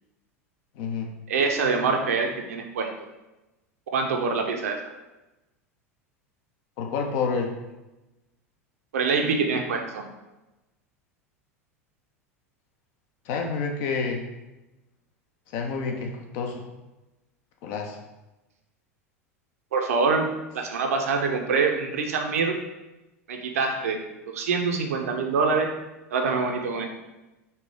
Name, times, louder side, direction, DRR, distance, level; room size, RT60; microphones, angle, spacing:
voice 1, 0.8-1.1 6.8-7.5 13.3-14.2 15.5-16.7 17.6-18.0, left 5 dB, 55° left, 2 dB, 0.7 m, -28 dB
voice 2, 1.3-2.9 3.9-4.8 8.9-10.1 19.7-22.6 23.3-24.0 24.3-25.8 26.1-26.9, right 4 dB, 70° right, 3 dB, 0.6 m, -25 dB
4.2 x 2.7 x 3.5 m, 1.0 s
figure-of-eight pair, 85°, 8 cm